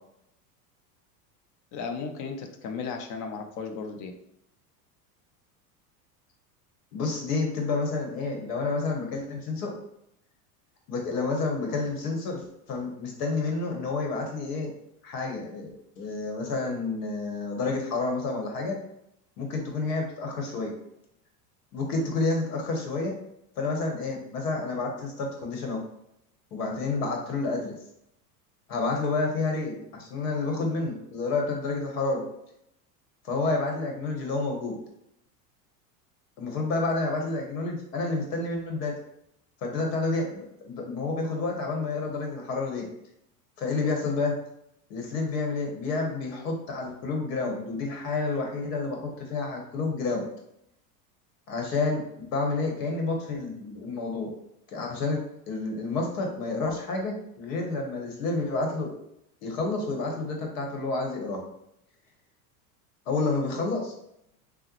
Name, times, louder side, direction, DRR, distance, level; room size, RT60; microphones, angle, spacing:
voice 1, 1.7-4.1, left 5 dB, 40° left, 5 dB, 0.5 m, -35 dB
voice 2, 6.9-9.7 10.9-14.7 15.0-18.8 19.4-20.7 21.7-23.1 23.6-25.8 26.5-27.7 28.7-32.2 33.2-34.8 36.4-39.0 39.6-42.9 43.6-44.3 44.9-50.2 51.5-52.0 52.3-54.3 54.7-55.2 55.5-58.9 59.4-61.4 63.1-63.9, left 3 dB, 75° left, 1 dB, 1.0 m, -29 dB
3.4 x 2.1 x 2.9 m, 0.78 s
hypercardioid pair, 95°, 47 cm